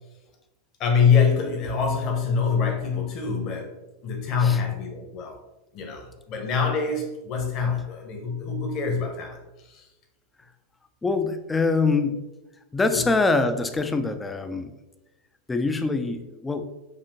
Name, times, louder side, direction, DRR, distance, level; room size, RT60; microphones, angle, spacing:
voice 1, 0.8-3.7 4.0-5.4 5.7-9.4 9.7-9.9 12.9-13.0, left 6 dB, 40° left, 3 dB, 1.0 m, -24 dB
voice 2, 11.0-12.3 12.7-14.7 15.5-16.7, left 3 dB, 10° left, 9 dB, 0.4 m, -24 dB
6.6 x 2.8 x 2.7 m, 1.0 s
figure-of-eight pair, 90°, 0 cm